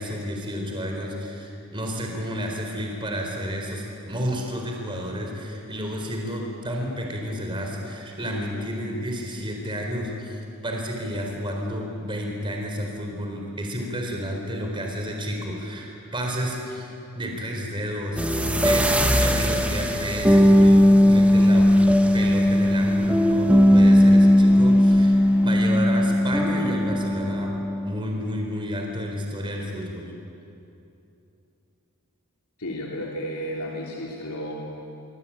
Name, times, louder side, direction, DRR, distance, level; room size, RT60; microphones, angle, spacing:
voice 1, 0.0-18.9 19.2-21.7 22.1-27.5 27.8-30.1, equal, 20° right, 1 dB, 4.1 m, -31 dB
sound 1, 18.2-27.9, equal, 5° right, 1.5 m, -18 dB
voice 2, 32.6-34.5, equal, 80° left, -2 dB, 3.1 m, -32 dB
25.5 x 24.5 x 8.9 m, 2.8 s
head